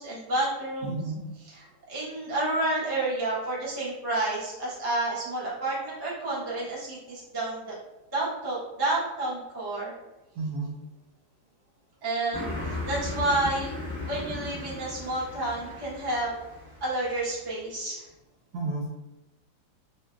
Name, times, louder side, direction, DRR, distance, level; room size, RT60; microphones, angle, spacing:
voice 1, 0.0-1.0 1.4-7.7 8.1-9.9 12.0-13.7 14.0-16.4 16.8-18.1, right 2 dB, 35° right, -8 dB, 0.3 m, -30 dB
voice 2, 0.8-1.3 10.4-10.8 18.5-18.9, right 3 dB, 75° right, -3 dB, 0.8 m, -32 dB
Car passing by, 12.3-17.3, left 2 dB, 5° left, 0.9 m, -36 dB
3.0 x 2.6 x 2.3 m, 1.0 s
omnidirectional pair, 2.1 m